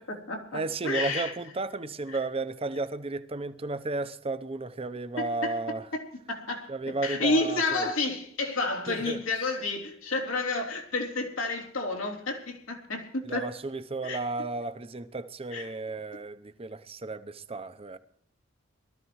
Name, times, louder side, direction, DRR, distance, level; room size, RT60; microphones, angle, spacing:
voice 1, 0.0-1.3 5.2-5.5 5.9-13.5 14.0-14.2 15.5-15.7, left 3 dB, 90° left, 3.3 m, -30 dB
voice 2, 0.5-5.8 6.7-7.9 8.9-9.2 13.2-18.0, right 3 dB, 30° right, 0.7 m, -33 dB
22.5 x 13.5 x 3.1 m
head